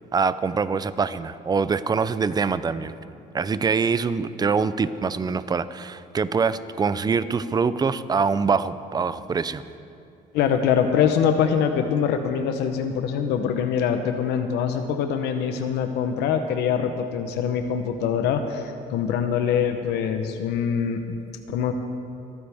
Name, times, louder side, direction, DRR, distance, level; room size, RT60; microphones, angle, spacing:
voice 1, 0.1-2.9 3.3-9.6, right 5 dB, 25° right, 14 dB, 0.5 m, -24 dB
voice 2, 10.3-21.0 21.5-21.7, left 7 dB, 85° left, 7 dB, 0.9 m, -24 dB
25.0 x 9.5 x 3.5 m, 2.6 s
cardioid pair, 110°, 17 cm